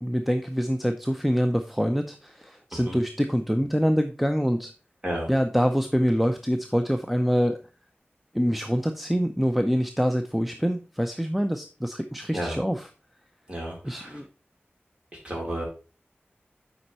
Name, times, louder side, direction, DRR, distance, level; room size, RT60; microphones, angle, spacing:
voice 1, 0.0-4.7 5.3-7.6 8.3-12.8 13.8-14.3, equal, ahead, 6 dB, 0.6 m, -25 dB
voice 2, 13.5-14.2 15.2-15.6, right 1 dB, 25° right, -2 dB, 4.1 m, -32 dB
7.8 x 5.2 x 4.2 m, 0.35 s
wide cardioid pair, 75°, 4 cm